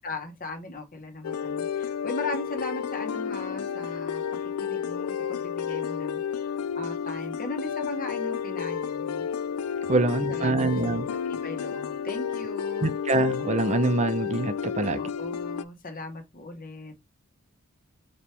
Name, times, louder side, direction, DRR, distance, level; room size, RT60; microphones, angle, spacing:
voice 1, 0.0-4.2 4.6-6.2 6.7-9.3 9.9-12.9 14.9-17.0, left 2 dB, 40° left, 1.4 m, -38 dB
sound 1, 1.2-15.6, left 7 dB, 85° left, 0.4 m, -31 dB
voice 2, 9.9-11.1 12.8-15.0, right 2 dB, 30° right, 0.6 m, -25 dB
4.4 x 3.1 x 3.3 m
head